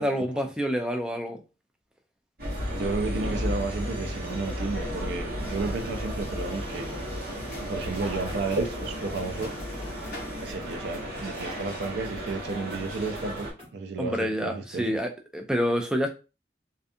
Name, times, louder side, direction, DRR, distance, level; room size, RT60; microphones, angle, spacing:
voice 1, 0.0-1.4 14.0-16.1, equal, 5° right, 0.3 m, -27 dB
sound 1, 2.4-13.5, equal, 55° right, 1.1 m, -34 dB
voice 2, 2.8-6.9 7.3-9.5 10.4-15.0, right 3 dB, 75° right, 0.4 m, -32 dB
sound 2, 5.4-10.5, left 2 dB, 55° left, 0.8 m, -44 dB
sound 3, 7.8-13.7, left 1 dB, 30° right, 1.4 m, -50 dB
2.5 x 2.3 x 2.5 m
head